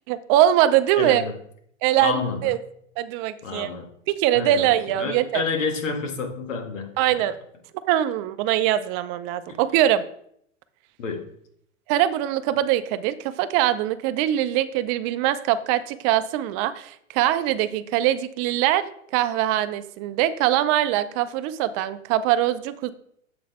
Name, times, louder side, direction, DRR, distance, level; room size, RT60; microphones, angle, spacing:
voice 1, 0.1-1.2 1.8-2.6 3.0-3.7 4.1-5.4 7.0-7.3 7.8-10.0 11.9-22.9, right 12 dB, 40° right, 13 dB, 0.5 m, -22 dB
voice 2, 1.0-1.3 2.0-2.4 3.4-3.9 4.3-4.7 5.0-7.3 11.0-11.3, left 4 dB, 75° left, 4 dB, 1.7 m, -29 dB
7.5 x 3.9 x 4.3 m, 0.68 s
hypercardioid pair, 100°, 38 cm